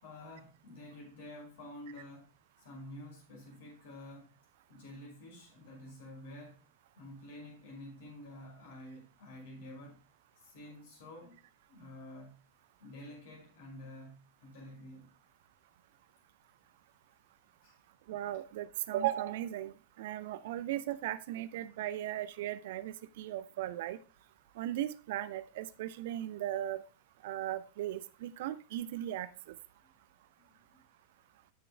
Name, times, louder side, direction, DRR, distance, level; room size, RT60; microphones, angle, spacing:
voice 1, 0.0-2.3 2.6-4.4 4.7-6.6 6.9-10.0 10.4-11.4 11.7-12.4 12.8-15.1 17.6-17.8 29.8-29.9 30.5-30.8, left 1 dB, 55° left, 5.1 m, -49 dB
voice 2, 18.1-24.0 24.6-26.8 27.2-29.3, right 13 dB, 55° right, 0.6 m, -37 dB
15.5 x 6.9 x 2.2 m
figure-of-eight pair, 90°, 0 cm